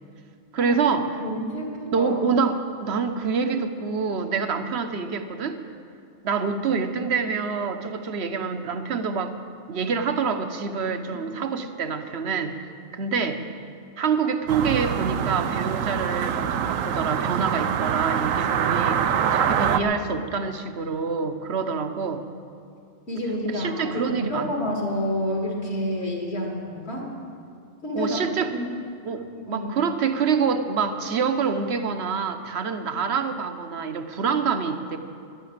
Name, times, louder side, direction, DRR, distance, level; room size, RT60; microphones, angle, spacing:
voice 1, 0.5-1.1 1.9-5.6 6.2-9.4 9.7-12.5 12.9-13.4 14.0-22.2 23.5-24.5 27.9-28.5 29.0-35.0, right 5 dB, 60° right, 8 dB, 1.1 m, -26 dB
voice 2, 1.2-2.2 11.1-11.2 23.1-27.1 27.8-28.2 28.5-28.6 29.5-29.7, equal, 55° left, -1 dB, 2.7 m, -29 dB
sound 1, 14.5-19.8, right 8 dB, 90° right, 1.1 m, -24 dB
11.5 x 11.5 x 8.7 m, 2.4 s
omnidirectional pair, 1.3 m